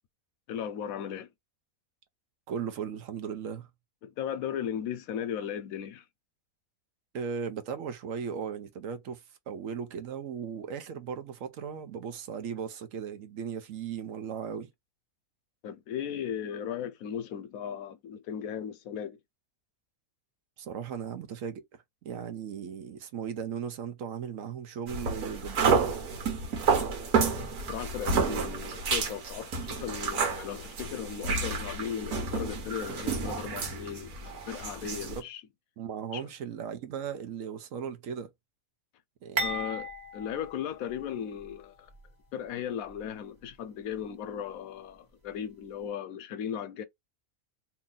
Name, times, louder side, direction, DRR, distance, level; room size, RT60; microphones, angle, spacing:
voice 1, 0.5-1.3 4.0-6.0 15.6-19.2 27.7-35.4 36.1-36.3 39.4-41.9 42.3-46.8, left 8 dB, 75° left, 1.0 m, -37 dB
voice 2, 2.5-3.7 7.1-14.7 20.6-21.6 22.0-26.0 28.4-28.5 34.8-35.2 35.8-38.3 39.2-39.6, right 7 dB, 70° right, 1.0 m, -37 dB
sound 1, 24.9-35.2, right 5 dB, 90° right, 1.5 m, -30 dB
sound 2, 39.4-41.5 41.9-42.0 42.9-43.1, right 2 dB, 35° right, 1.2 m, -36 dB
2.8 x 2.8 x 3.8 m
omnidirectional pair, 1.5 m